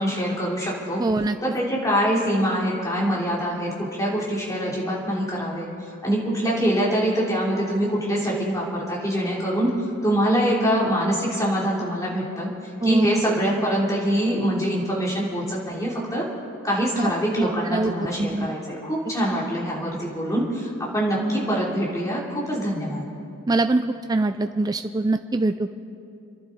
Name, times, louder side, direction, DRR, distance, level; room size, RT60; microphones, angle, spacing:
voice 1, 0.0-1.0 1.4-5.7 6.0-9.7 10.0-12.5 12.8-16.3 16.6-23.1, equal, 15° left, -5 dB, 3.0 m, -24 dB
voice 2, 1.0-1.4 12.8-13.2 17.0-17.1 17.4-18.5 23.5-25.7, right 2 dB, 15° right, 8 dB, 0.3 m, -24 dB
29.0 x 11.5 x 3.9 m, 2.6 s
head